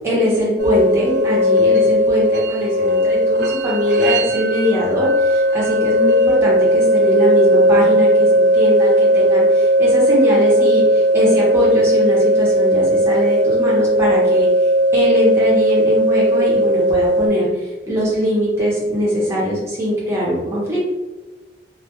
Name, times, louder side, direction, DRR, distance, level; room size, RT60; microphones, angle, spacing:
voice 1, 0.0-20.8, equal, 15° right, -6 dB, 0.7 m, -21 dB
sound 1, 0.6-17.3, equal, 65° right, 0.3 m, -16 dB
2.2 x 2.1 x 2.8 m, 1.1 s
head